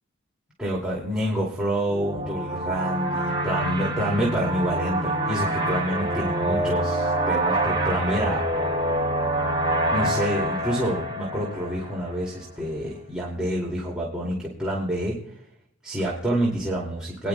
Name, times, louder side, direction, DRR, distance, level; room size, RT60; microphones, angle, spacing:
voice 1, 0.6-8.7 9.9-15.3 15.8-17.3, right 1 dB, 5° right, -5 dB, 2.4 m, -28 dB
sound 1, 1.9-12.2, right 1 dB, 25° right, 1.9 m, -26 dB
22.0 x 11.0 x 2.3 m, 0.68 s
head